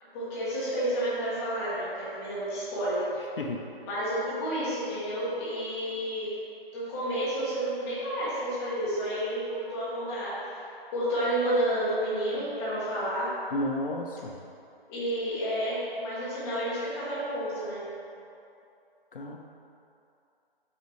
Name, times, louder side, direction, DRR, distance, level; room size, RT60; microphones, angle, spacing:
voice 1, 0.1-3.2 3.8-6.3 6.7-10.6 10.9-13.3 14.9-17.8, right 1 dB, 5° left, -11 dB, 0.7 m, -30 dB
voice 2, 3.2-3.7 13.5-14.4 19.1-19.4, left 1 dB, 65° left, 1 dB, 0.8 m, -32 dB
6.6 x 5.5 x 3.1 m, 2.6 s
figure-of-eight pair, 150°, 30 cm